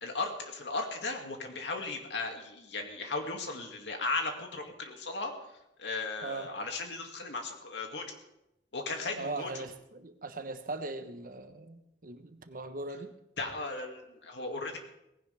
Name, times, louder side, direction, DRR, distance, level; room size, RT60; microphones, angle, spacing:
voice 1, 0.0-5.3 5.8-8.2 8.7-9.7 13.4-14.8, left 3 dB, 90° left, 3 dB, 2.4 m, -36 dB
voice 2, 9.2-13.1, right 3 dB, 50° right, 8 dB, 1.1 m, -40 dB
18.5 x 16.0 x 3.5 m, 0.85 s
head